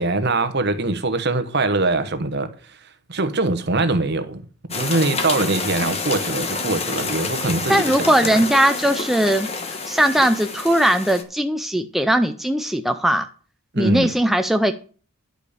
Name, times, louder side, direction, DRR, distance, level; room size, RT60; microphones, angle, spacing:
voice 1, 0.0-2.5 3.1-4.4 4.7-8.1 13.7-14.1, right 2 dB, 50° right, 1.1 m, -22 dB
sound 1, 4.7-11.2, left 4 dB, 30° left, 1.2 m, -28 dB
voice 2, 7.7-13.3 13.8-14.7, right 1 dB, ahead, 0.4 m, -19 dB
11.0 x 5.2 x 6.8 m
head